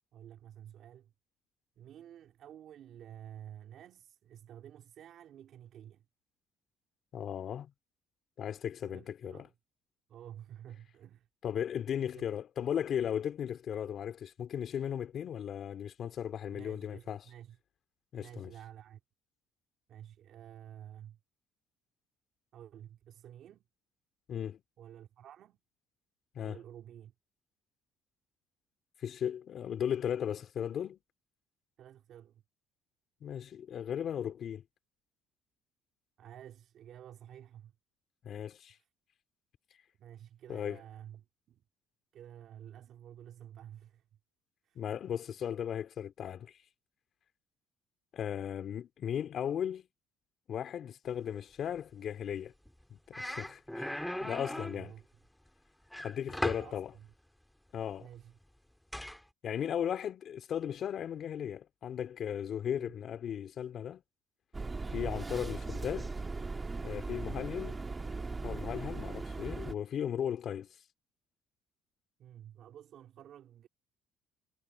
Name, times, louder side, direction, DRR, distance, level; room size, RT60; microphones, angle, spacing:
voice 1, 0.1-1.1 1.8-6.1 8.8-9.5 10.1-11.3 12.0-12.3 16.5-17.6 18.2-19.0 19.9-21.2 22.5-23.6 24.8-25.6 26.4-27.1 31.8-32.4 36.2-37.7 38.7-38.9 40.0-41.6 42.1-44.1 44.6-44.8 54.7-55.1 56.3-57.1 58.0-58.4 62.7-62.9 72.2-73.7, right 10 dB, 60° right, 3.2 m, -51 dB
voice 2, 7.1-7.7 8.4-9.5 11.4-17.2 18.1-18.5 24.3-24.6 26.3-26.6 29.0-31.0 33.2-34.6 38.2-38.7 40.5-40.8 44.7-46.5 48.1-49.9 50.5-52.5 52.9-54.9 56.0-56.9 57.7-58.1 59.4-64.0 64.9-66.1 66.8-67.8 68.4-70.7, left 9 dB, 50° left, 2.7 m, -36 dB
sound 1, 52.7-52.8 53.1-54.8 55.9-56.7 58.9-59.2, left 1 dB, 5° left, 2.4 m, -37 dB
sound 2, 64.5-69.7, right 3 dB, 20° right, 1.7 m, -38 dB
cardioid pair, 105°, 0 cm